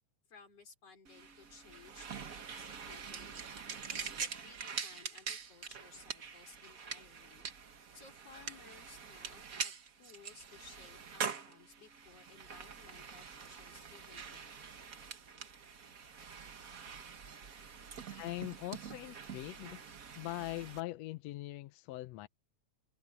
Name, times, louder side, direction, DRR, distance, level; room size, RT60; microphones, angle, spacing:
voice 1, 0.3-3.5 3.9-7.5 7.9-14.4, left 5 dB, 55° left, 6.0 m, -58 dB
sound 1, 1.0-20.8, right 6 dB, 45° right, 1.1 m, -45 dB
voice 2, 18.1-19.8 20.2-22.3, left 17 dB, 75° left, 1.7 m, -42 dB
open air
omnidirectional pair, 3.4 m